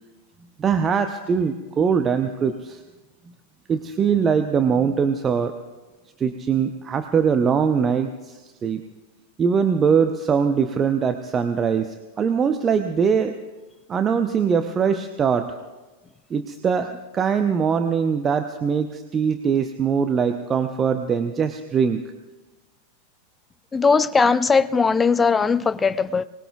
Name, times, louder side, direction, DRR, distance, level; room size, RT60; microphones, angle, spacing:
voice 1, 0.6-2.8 3.7-5.5 6.2-8.8 9.4-13.4 13.9-15.6 16.3-22.0, right 6 dB, 20° right, 0.7 m, -22 dB
voice 2, 23.7-26.2, left 5 dB, 15° left, 0.5 m, -19 dB
24.0 x 19.5 x 2.4 m
figure-of-eight pair, 90°, 0 cm